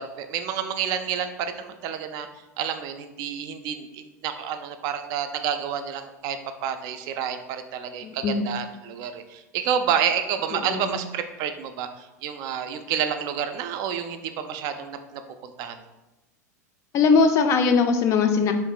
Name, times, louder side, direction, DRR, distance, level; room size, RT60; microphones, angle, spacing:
voice 1, 0.0-2.3 2.6-15.9, right 8 dB, 45° right, 8 dB, 0.4 m, -29 dB
voice 2, 8.0-8.5 10.5-11.0 16.9-18.5, left 5 dB, 35° left, 7 dB, 0.4 m, -21 dB
3.5 x 2.5 x 3.8 m, 1.0 s
figure-of-eight pair, 85°, 9 cm